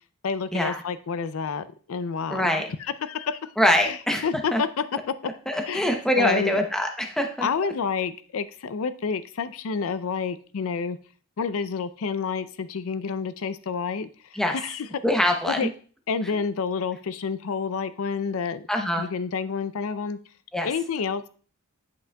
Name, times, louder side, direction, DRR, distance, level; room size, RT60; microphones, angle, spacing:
voice 1, 0.2-2.6 3.0-3.5 3.8-5.1 5.7-5.9 6.2-6.6 7.4-11.0 11.4-14.9 15.4-15.7 16.1-18.7 19.0-20.2 20.6-21.3, left 5 dB, 70° left, 13 dB, 0.4 m, -29 dB
voice 2, 2.3-2.7 3.6-4.2 4.5-4.6 5.5-7.5 14.3-14.6 15.0-15.7 18.7-19.1 20.5-20.7, left 1 dB, ahead, 3 dB, 0.7 m, -23 dB
10.5 x 5.9 x 2.3 m, 0.43 s
head